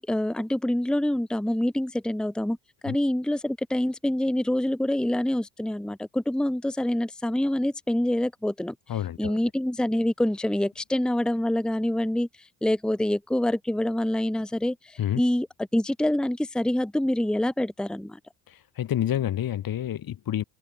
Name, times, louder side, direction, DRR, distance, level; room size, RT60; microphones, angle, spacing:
voice 1, 0.0-2.6 2.8-8.7 9.2-15.5 15.7-18.2, left 1 dB, ahead, 1.1 m, -26 dB
voice 2, 8.9-9.4 15.0-15.2 18.5-20.4, left 11 dB, 50° left, 1.6 m, -28 dB
open air
hypercardioid pair, 55°, 45 cm